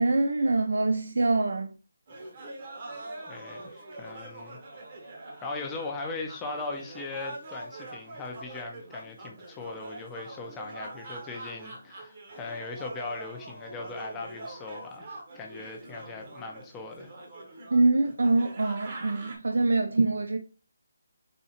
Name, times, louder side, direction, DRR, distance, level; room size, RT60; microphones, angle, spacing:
voice 1, 0.0-1.7 17.7-20.4, right 2 dB, 70° right, 0.3 m, -24 dB
sound 1, 2.1-19.4, right 2 dB, 35° right, 0.8 m, -44 dB
voice 2, 3.3-4.6 5.4-17.1, left 3 dB, 10° left, 0.4 m, -39 dB
4.2 x 2.3 x 2.7 m
hypercardioid pair, 170°, 0 cm